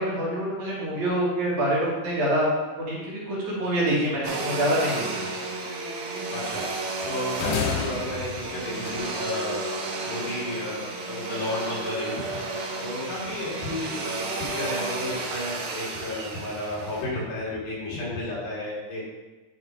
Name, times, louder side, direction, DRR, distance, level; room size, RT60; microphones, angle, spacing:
voice 1, 0.0-2.5 2.8-5.3, right 1 dB, 60° right, -6 dB, 2.9 m, -26 dB
Domestic sounds home sounds, 4.2-17.1, right 3 dB, 85° right, 3.0 m, -32 dB
voice 2, 6.3-6.6 7.0-9.6 10.0-12.4 12.8-19.1, left 1 dB, 60° left, -6 dB, 3.8 m, -32 dB
sound 1, 7.4-9.6, left 7 dB, 85° left, 1.7 m, -32 dB
10.0 x 4.2 x 4.4 m, 1.2 s
omnidirectional pair, 4.1 m